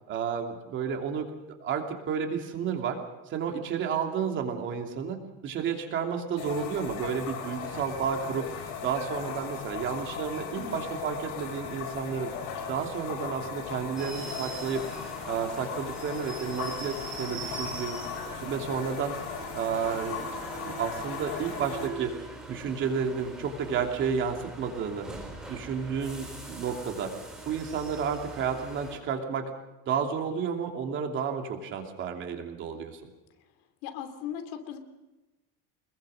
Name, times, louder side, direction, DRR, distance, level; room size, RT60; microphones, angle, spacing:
voice 1, 0.1-3.0 3.3-12.3 12.7-14.8 15.3-18.0 18.3-19.2 19.5-20.2 20.7-22.1 22.5-25.1 25.5-27.1 27.4-29.5 29.9-33.0, right 6 dB, 35° right, 3 dB, 2.9 m, -31 dB
sound 1, 6.4-21.9, left 6 dB, 60° left, 5.0 m, -38 dB
sound 2, 14.0-29.0, right 3 dB, ahead, 4.5 m, -42 dB
voice 2, 33.8-34.8, left 8 dB, 75° left, 8 dB, 3.1 m, -38 dB
25.0 x 21.5 x 6.5 m, 1.1 s
cardioid pair, 175°, 33 cm